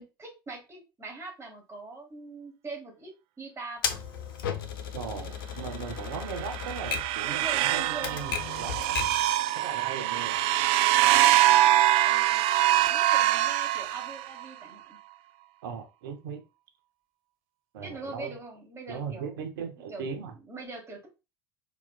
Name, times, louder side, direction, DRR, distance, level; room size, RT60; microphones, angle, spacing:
voice 1, 0.0-3.1 3.4-4.0 7.3-8.2 11.1-11.2 12.0-12.4 12.9-15.0 17.8-19.4 19.9-20.2 20.5-21.1, right 3 dB, 25° right, 2.6 m, -42 dB
Typewriter, 3.8-9.3, left 7 dB, 70° left, 0.7 m, -35 dB
voice 2, 4.9-9.0 9.5-10.4 15.6-16.4 17.7-18.4 18.9-20.3, right 6 dB, 70° right, 0.9 m, -38 dB
sound 1, 6.2-14.5, right 14 dB, 50° right, 0.4 m, -24 dB
4.6 x 4.3 x 2.2 m
figure-of-eight pair, 70°, 12 cm